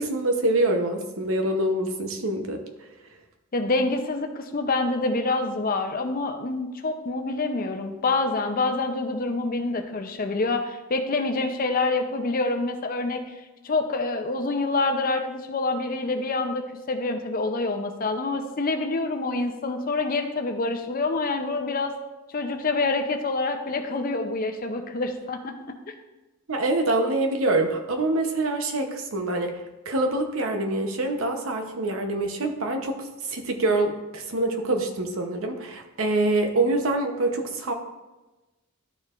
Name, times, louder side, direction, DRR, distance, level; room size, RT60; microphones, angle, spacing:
voice 1, 0.0-2.6 26.5-29.5 29.8-37.7, right 2 dB, 75° right, 4 dB, 0.9 m, -25 dB
voice 2, 3.5-13.3 13.6-21.9 22.3-25.8, left 3 dB, 45° left, 6 dB, 0.6 m, -26 dB
12.0 x 4.6 x 2.5 m, 1.1 s
head